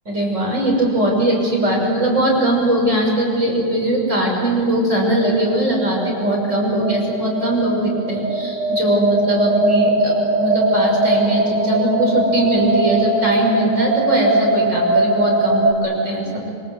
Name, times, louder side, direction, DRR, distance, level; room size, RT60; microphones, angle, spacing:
voice 1, 0.1-16.5, right 1 dB, 45° right, -1 dB, 6.5 m, -20 dB
sound 1, 5.5-15.7, right 2 dB, 75° right, 3.0 m, -20 dB
26.5 x 24.5 x 8.1 m, 2.4 s
omnidirectional pair, 1.9 m